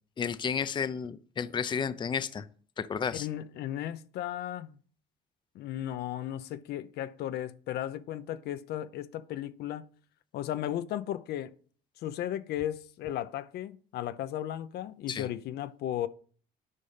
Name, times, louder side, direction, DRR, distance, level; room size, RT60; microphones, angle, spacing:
voice 1, 0.2-2.5 2.8-3.3 15.1-15.3, left 7 dB, 25° left, 0.5 m, -32 dB
voice 2, 3.1-4.8 5.5-9.9 10.3-11.5 12.0-16.1, left 12 dB, 75° left, 0.7 m, -35 dB
9.9 x 5.3 x 5.7 m
cardioid pair, 110°, 17 cm